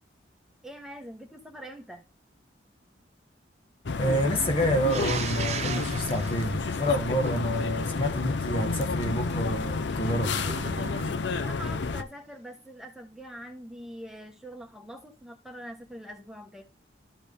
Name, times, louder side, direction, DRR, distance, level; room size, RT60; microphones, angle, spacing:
voice 1, 0.6-2.0 11.4-16.6, equal, 5° right, 1.2 m, -43 dB
sound 1, 3.9-12.0, left 4 dB, 75° left, 0.6 m, -30 dB
voice 2, 4.0-10.3, equal, 30° left, 1.1 m, -28 dB
sound 2, 4.9-7.6 10.0-11.5, right 5 dB, 35° right, 0.5 m, -37 dB
12.0 x 4.4 x 3.5 m
head